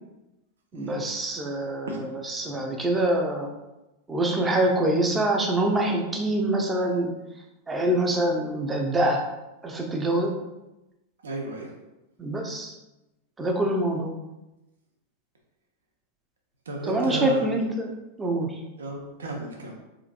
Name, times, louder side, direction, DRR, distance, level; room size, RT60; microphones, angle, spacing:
voice 1, 0.7-3.5 4.1-7.1 7.7-9.2 9.6-10.3 12.2-12.7 13.4-14.1 16.8-17.9 18.2-18.6, right 1 dB, 15° right, 2 dB, 0.6 m, -25 dB
voice 2, 11.2-11.7 16.7-17.6 18.8-19.7, right 2 dB, 65° right, 0 dB, 0.7 m, -33 dB
3.9 x 2.5 x 2.5 m, 0.98 s
figure-of-eight pair, 90°, 0 cm